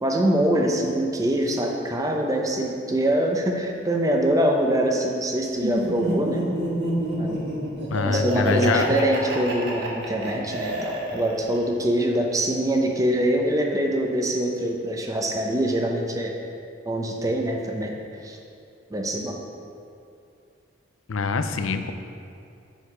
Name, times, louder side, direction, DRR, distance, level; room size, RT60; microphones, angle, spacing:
voice 1, 0.0-6.4 7.2-7.4 8.1-16.3 16.8-17.9 18.2-18.4 18.9-19.3, right 1 dB, 15° right, 1 dB, 0.7 m, -24 dB
Laughter, 5.6-11.6, right 1 dB, 60° right, 1.4 m, -28 dB
voice 2, 7.9-9.0 21.1-21.9, left 4 dB, 80° left, 9 dB, 0.5 m, -25 dB
7.2 x 6.4 x 4.9 m, 2.6 s
head